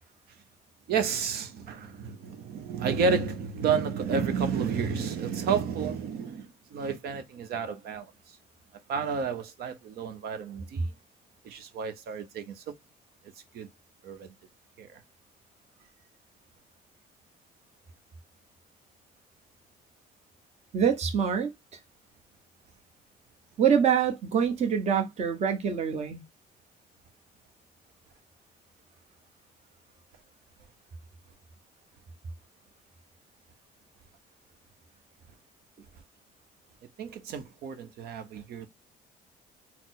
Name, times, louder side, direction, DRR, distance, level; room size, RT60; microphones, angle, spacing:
voice 1, 0.9-8.1 8.9-10.9 11.4-12.6 13.5-13.7 14.0-14.3 14.8-14.9 37.0-38.7, right 6 dB, 70° right, 0.9 m, -31 dB
voice 2, 20.7-21.5 23.6-26.2, right 7 dB, 40° right, 0.9 m, -25 dB
4.2 x 2.0 x 4.1 m
cardioid pair, 110°, 17 cm